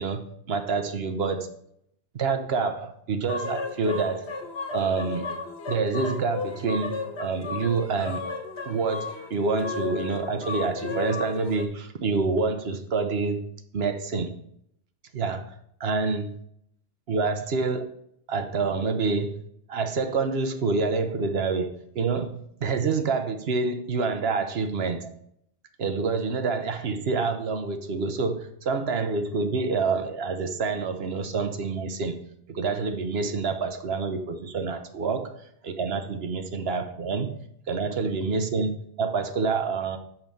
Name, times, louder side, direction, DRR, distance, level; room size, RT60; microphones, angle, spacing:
voice 1, 0.0-1.5 2.1-4.3 4.7-5.3 5.7-8.2 8.6-13.5 13.7-14.3 15.1-15.5 15.8-16.4 17.1-17.8 18.3-19.3 19.7-25.1 25.8-32.2 32.5-35.3 35.6-37.4 37.7-40.0, right 4 dB, 70° right, 8 dB, 1.1 m, -27 dB
sound 1, 3.3-11.7, left 4 dB, 75° left, 1.5 m, -34 dB
5.7 x 5.7 x 6.9 m, 0.72 s
omnidirectional pair, 1.1 m